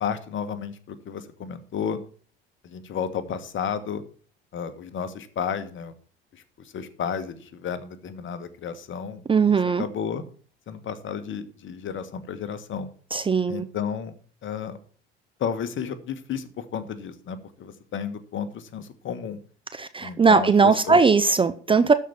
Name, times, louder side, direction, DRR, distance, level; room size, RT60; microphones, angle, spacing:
voice 1, 0.0-2.0 2.6-4.0 4.5-5.9 6.3-10.2 10.7-12.9 13.5-14.1 14.4-14.8 15.4-19.4 20.0-21.0, left 7 dB, 40° left, 11 dB, 1.4 m, -32 dB
voice 2, 9.3-9.8 13.1-13.6 19.7-21.9, right 4 dB, 15° right, 11 dB, 0.6 m, -19 dB
12.5 x 4.7 x 7.1 m, 0.43 s
figure-of-eight pair, 65°, 30 cm